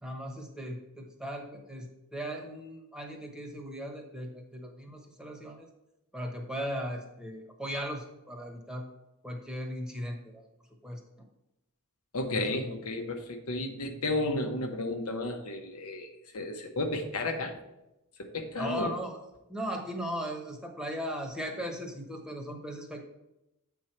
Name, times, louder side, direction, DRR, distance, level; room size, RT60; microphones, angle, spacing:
voice 1, 0.0-5.7 6.1-8.9 9.2-10.4 10.8-11.0 12.3-12.6 18.6-19.2 19.5-23.0, equal, 5° right, 1 dB, 1.0 m, -38 dB
voice 2, 12.1-17.5 18.2-18.9, left 2 dB, 85° left, 3 dB, 1.1 m, -33 dB
8.1 x 4.6 x 4.5 m, 0.90 s
head